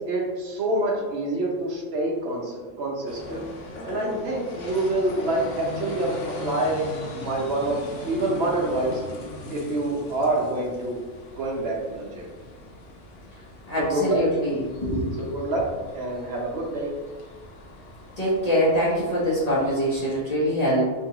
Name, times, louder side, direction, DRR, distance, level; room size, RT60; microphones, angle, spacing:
voice 1, 0.1-3.4 3.8-6.9 7.2-9.0 9.5-11.0 11.3-12.3 13.8-14.2 15.2-15.7 15.9-16.9, right 2 dB, 65° right, -2 dB, 0.8 m, -27 dB
sound 1, 3.1-20.2, left 2 dB, 80° left, 0.9 m, -40 dB
voice 2, 13.7-15.2 18.2-20.9, equal, 40° left, -8 dB, 0.6 m, -24 dB
2.6 x 2.3 x 2.7 m, 1.3 s
omnidirectional pair, 1.2 m